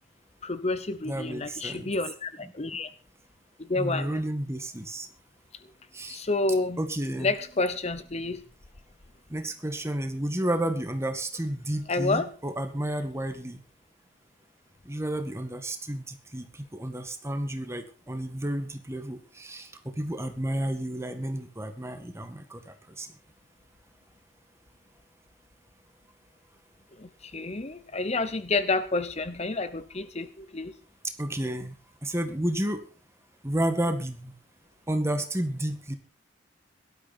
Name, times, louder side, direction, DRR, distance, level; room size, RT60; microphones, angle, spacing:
voice 1, 0.4-2.9 3.6-4.2 6.1-6.8 7.2-8.4 11.9-12.3 27.0-30.7, left 3 dB, 35° left, 12 dB, 0.8 m, -29 dB
voice 2, 1.0-1.9 2.4-2.5 3.8-5.1 5.9-6.2 6.8-7.3 9.3-13.6 14.9-23.1 31.0-31.8 32.0-32.8 33.4-34.3 34.9-36.0, right 1 dB, 15° right, 7 dB, 1.9 m, -31 dB
17.5 x 12.5 x 4.4 m, 0.36 s
head